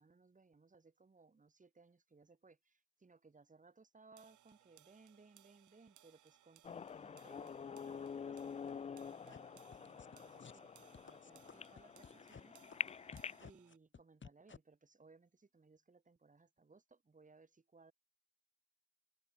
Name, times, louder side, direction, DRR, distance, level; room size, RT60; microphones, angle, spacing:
voice 1, 0.0-13.0 13.4-17.9, right 4 dB, 25° right, 6.1 m, -65 dB
sound 1, 4.2-13.8, right 12 dB, 75° right, 4.9 m, -68 dB
sound 2, 6.6-13.5, left 6 dB, 25° left, 0.4 m, -47 dB
sound 3, 9.3-9.4 9.7-10.1 10.4-10.6 10.9-12.4 12.7-12.8 13.1-14.6, left 6 dB, 40° left, 5.5 m, -54 dB
open air
cardioid pair, 90°, 30 cm